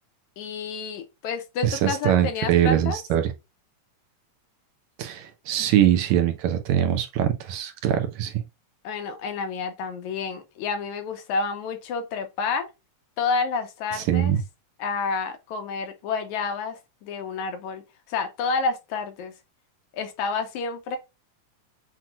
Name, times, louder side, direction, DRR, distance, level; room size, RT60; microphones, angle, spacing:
voice 1, 0.4-3.0 8.8-12.7 13.2-14.4 14.8-17.8 18.1-19.3 20.0-21.0, left 4 dB, 75° left, 2.3 m, -29 dB
voice 2, 1.6-3.3 5.0-8.3 14.1-14.4, right 10 dB, 75° right, 2.2 m, -22 dB
7.5 x 3.0 x 2.3 m
omnidirectional pair, 3.4 m